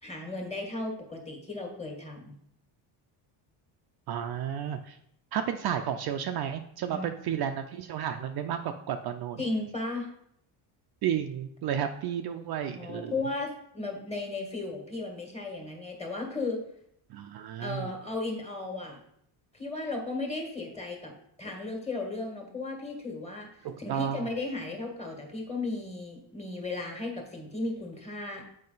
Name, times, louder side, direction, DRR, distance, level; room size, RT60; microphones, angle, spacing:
voice 1, 0.0-2.3 6.9-7.3 9.4-10.1 12.7-16.6 17.6-19.0 19.5-21.1 21.4-28.4, left 2 dB, 15° left, 1 dB, 1.7 m, -35 dB
voice 2, 4.1-5.0 5.3-9.4 11.0-13.1 17.1-17.9 23.6-24.3, right 9 dB, 50° right, 6 dB, 0.5 m, -32 dB
7.5 x 4.9 x 3.9 m, 0.72 s
cardioid pair, 120°, 48 cm